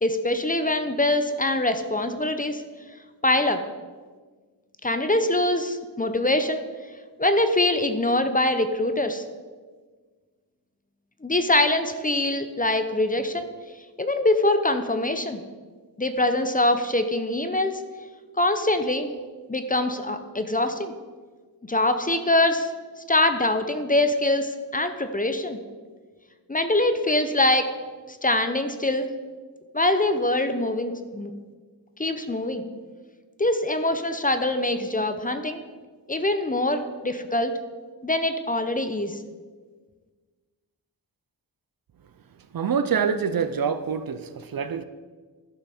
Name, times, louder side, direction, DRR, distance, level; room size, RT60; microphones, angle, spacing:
voice 1, 0.0-2.6 3.2-3.6 4.8-6.6 7.2-9.2 11.2-13.5 14.0-15.4 16.0-17.8 18.4-19.1 19.5-20.9 21.6-22.7 23.1-25.6 26.5-27.7 28.1-29.1 29.7-31.3 32.0-32.6 33.4-35.6 36.1-37.5 38.0-39.2, left 1 dB, 20° left, 0.7 m, -23 dB
voice 2, 42.5-44.2 44.5-44.8, right 6 dB, 50° right, 0.6 m, -25 dB
11.5 x 5.8 x 4.3 m
cardioid pair, 65°, 44 cm